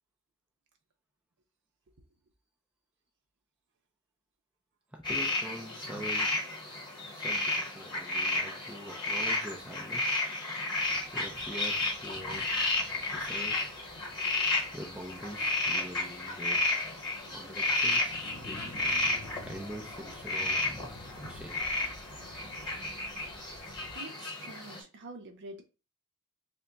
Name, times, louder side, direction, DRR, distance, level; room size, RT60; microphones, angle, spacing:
voice 1, 4.9-6.3 7.1-10.2 11.1-12.7 13.1-13.7 14.7-16.6 17.3-18.6 19.4-21.7, equal, 5° right, 0 dB, 0.5 m, -44 dB
sound 1, 5.0-24.8, left 2 dB, 20° left, 1.2 m, -32 dB
sound 2, 10.7-24.0, left 1 dB, 75° left, 0.8 m, -52 dB
voice 2, 23.9-25.6, right 2 dB, 55° right, 4 dB, 0.6 m, -46 dB
3.4 x 2.2 x 4.0 m, 0.31 s
head